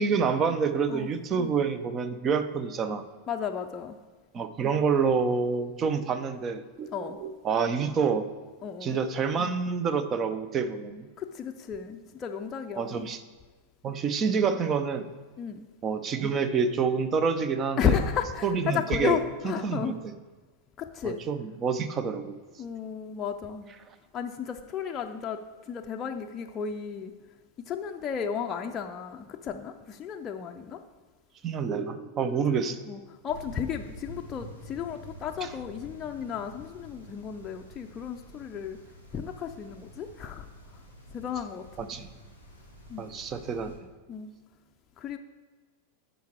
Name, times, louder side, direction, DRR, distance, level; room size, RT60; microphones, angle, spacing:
voice 1, 0.0-3.0 4.3-8.3 8.8-11.1 12.8-13.2 13.8-15.1 15.8-18.0 18.4-19.2 19.4-20.1 21.0-22.4 31.4-32.8 35.4-35.5 41.8-42.1 43.0-43.7, right 5 dB, 25° right, 11 dB, 0.7 m, -28 dB
voice 2, 3.3-4.0 6.9-7.2 8.6-9.0 11.2-13.1 15.4-15.7 17.8-20.0 20.8-21.2 22.6-23.7 24.1-25.4 25.7-27.1 27.6-30.8 32.5-33.0 33.2-38.8 39.1-40.5 41.1-41.9 42.9-43.0 44.1-44.3 45.0-45.2, left 7 dB, 25° left, 3 dB, 0.5 m, -33 dB
sound 1, 33.3-43.7, equal, 80° right, 2.5 m, -48 dB
9.3 x 5.3 x 4.5 m, 1.4 s
figure-of-eight pair, 90°, 0 cm